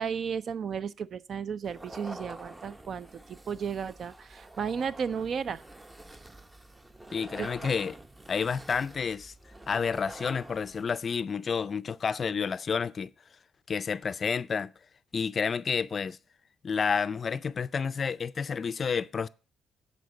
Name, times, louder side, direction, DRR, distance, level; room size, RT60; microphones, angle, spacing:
voice 1, 0.0-3.1 3.5-5.6 7.4-7.5, right 6 dB, 55° right, 0.5 m, -33 dB
sound 1, 1.6-11.0, right 1 dB, 15° right, 0.7 m, -47 dB
voice 2, 7.1-8.0 8.3-9.3 9.7-13.1 13.7-14.7 15.1-16.2 16.6-19.3, left 6 dB, 45° left, 0.4 m, -30 dB
9.2 x 4.4 x 6.9 m
cardioid pair, 90°, 0 cm